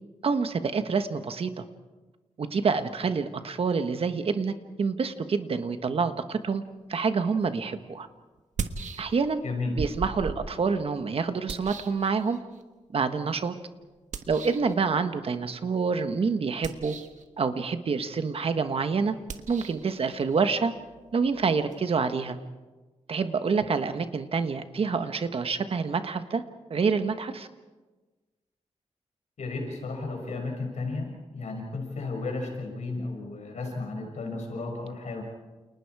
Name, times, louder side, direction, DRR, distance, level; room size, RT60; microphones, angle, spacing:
voice 1, 0.2-1.6 2.4-6.6 6.9-8.1 9.0-9.4 9.8-12.4 12.9-13.5 14.3-17.0 17.4-19.1 19.5-20.7 21.1-22.4 23.1-26.4 26.7-27.5, right 5 dB, 50° right, 9 dB, 1.3 m, -27 dB
sound 1, 7.4-7.5 8.4-9.4 9.8-12.6 14.1-14.7 16.5-17.3 19.2-21.8, right 5 dB, 85° right, 1.5 m, -39 dB
voice 2, 29.4-35.2, left 3 dB, 75° left, 1 dB, 6.3 m, -33 dB
29.5 x 29.0 x 4.8 m, 1.3 s
wide cardioid pair, 180°, 12 cm